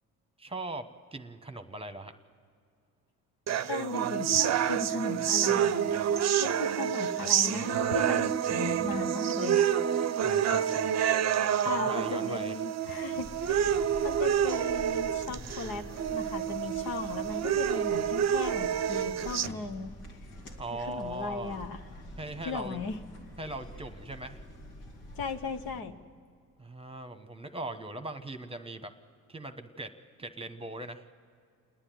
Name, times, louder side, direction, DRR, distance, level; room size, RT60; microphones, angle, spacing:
voice 1, 0.4-2.1 10.2-10.9 11.7-12.6 20.6-21.6 22.2-22.8 23.4-24.4 26.6-28.9 29.3-29.9 30.2-31.0, right 1 dB, 15° right, 8 dB, 1.2 m, -40 dB
sound 1, 3.5-19.5, right 9 dB, 40° right, 0.7 m, -28 dB
voice 2, 3.7-5.9 6.4-9.6 11.6-19.9 20.8-21.8 22.4-23.0 25.2-26.0, left 4 dB, 60° left, 7 dB, 1.2 m, -37 dB
sound 2, 13.2-25.8, equal, 80° left, 2.6 m, -47 dB
28.5 x 9.8 x 9.3 m, 2.2 s
supercardioid pair, 75°, 40 cm